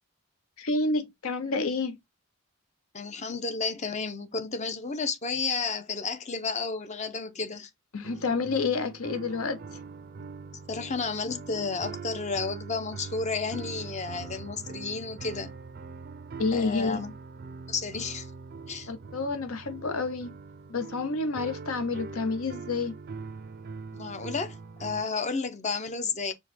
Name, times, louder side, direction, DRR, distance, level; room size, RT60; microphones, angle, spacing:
voice 1, 0.6-2.0 7.9-9.6 16.4-17.0 18.9-20.3 20.7-22.9, left 3 dB, 80° left, 0.7 m, -29 dB
voice 2, 2.9-7.7 10.7-15.5 16.5-17.1 17.7-18.3 18.7-18.9 23.9-26.3, left 4 dB, 35° left, 0.6 m, -32 dB
sound 1, 8.0-25.0, right 4 dB, 45° right, 0.4 m, -42 dB
4.7 x 2.2 x 4.2 m
head